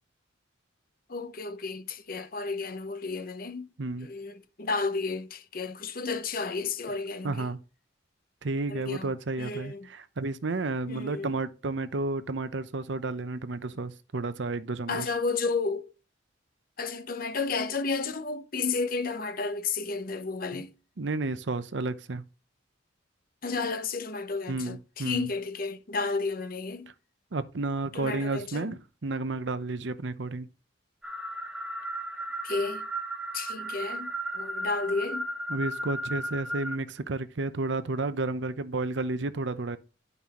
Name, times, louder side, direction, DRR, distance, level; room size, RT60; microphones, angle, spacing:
voice 1, 1.1-3.7 4.0-7.5 8.7-9.1 9.4-9.9 10.9-11.4 14.9-15.9 16.8-20.7 23.4-26.9 27.9-28.8 32.4-32.9 33.3-35.3, left 4 dB, 45° left, 0.8 m, -32 dB
voice 2, 7.2-7.6 8.4-15.1 20.5-20.6 21.0-22.2 24.5-25.3 27.3-30.5 35.5-39.8, right 3 dB, 65° right, 0.7 m, -32 dB
sound 1, 31.0-36.8, right 1 dB, 5° right, 0.9 m, -35 dB
10.5 x 5.4 x 3.0 m
head